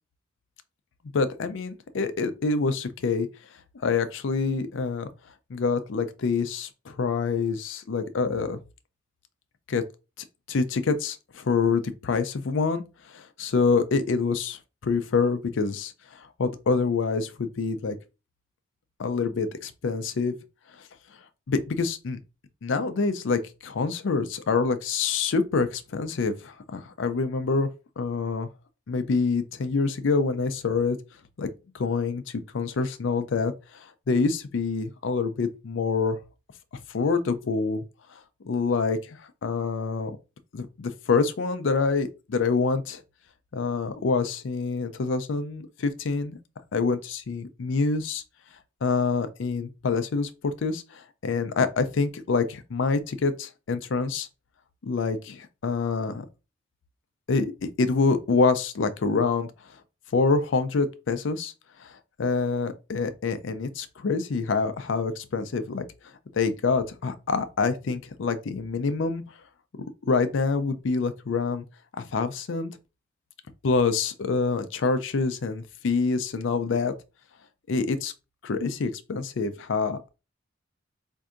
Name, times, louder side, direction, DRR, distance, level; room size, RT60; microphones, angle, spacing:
voice 1, 1.1-3.3 3.8-5.1 5.5-8.6 9.7-9.8 10.5-17.9 19.0-20.3 21.5-22.2 22.6-27.7 28.0-28.5 28.9-31.0 31.4-31.5 31.7-36.2 36.9-37.8 38.4-40.2 40.5-43.0 43.5-46.4 46.7-48.2 48.8-54.3 54.8-56.3 57.3-59.5 60.1-61.5 61.8-65.8 66.3-69.2 70.1-71.6 72.0-72.7 73.6-76.9 77.7-78.1 78.4-80.1, left 4 dB, 70° left, 0.5 m, -26 dB
4.4 x 2.6 x 2.4 m
head